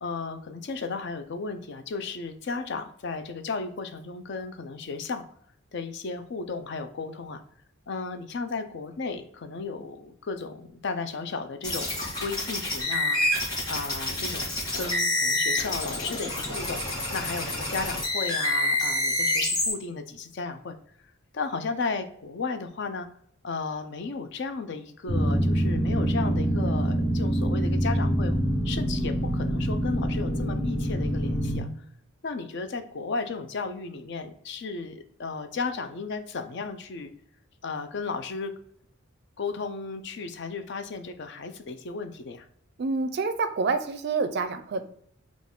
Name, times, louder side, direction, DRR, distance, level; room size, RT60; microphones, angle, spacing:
voice 1, 0.0-5.2 5.7-7.4 7.9-13.2 13.7-16.8 17.1-20.8 21.3-23.1 23.4-28.4 28.6-31.7 32.2-37.1 37.6-38.5 39.4-42.5, left 4 dB, 55° left, 8 dB, 0.4 m, -34 dB
sound 1, 11.6-19.7, left 1 dB, 20° left, 1.6 m, -28 dB
sound 2, 25.1-31.6, right 1 dB, 80° left, 1.4 m, -25 dB
voice 2, 42.8-44.8, right 4 dB, 50° right, 10 dB, 0.4 m, -27 dB
3.9 x 2.4 x 3.6 m, 0.66 s
head